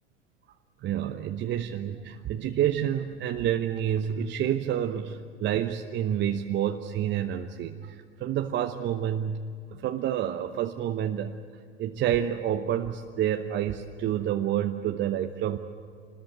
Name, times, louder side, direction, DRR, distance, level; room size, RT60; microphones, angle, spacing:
voice 1, 0.8-11.3 11.8-15.6, right 10 dB, 35° right, 5 dB, 1.0 m, -29 dB
26.5 x 20.5 x 8.0 m, 2.2 s
hypercardioid pair, 90°, 34 cm